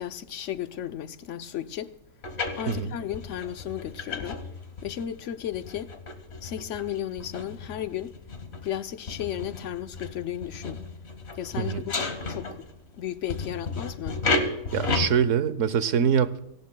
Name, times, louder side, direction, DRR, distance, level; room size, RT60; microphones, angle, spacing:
voice 1, 0.0-1.9 2.6-4.4 4.8-5.9 6.4-8.2 8.6-10.8 11.3-12.6 12.9-14.2, left 10 dB, 75° left, 1.0 m, -34 dB
sound 1, 2.2-12.9 13.3-15.1, left 3 dB, 60° left, 1.6 m, -33 dB
voice 2, 14.7-16.4, right 7 dB, 85° right, 1.2 m, -24 dB
29.5 x 18.0 x 2.3 m
omnidirectional pair, 1.3 m